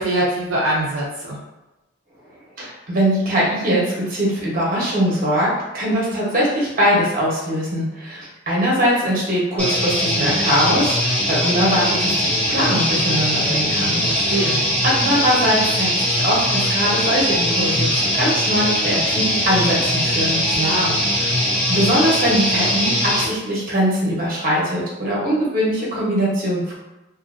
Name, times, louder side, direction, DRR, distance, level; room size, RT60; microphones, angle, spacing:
voice 1, 0.0-1.4 14.1-14.6 20.5-21.0, right 1 dB, 75° right, -6 dB, 0.6 m, -23 dB
voice 2, 2.6-14.0 14.4-14.6 14.8-20.4 21.2-21.3 21.7-26.7, equal, 45° right, -5 dB, 1.0 m, -21 dB
sound 1, 9.6-23.3, equal, 5° left, 0.7 m, -21 dB
2.7 x 2.5 x 2.6 m, 1.0 s
head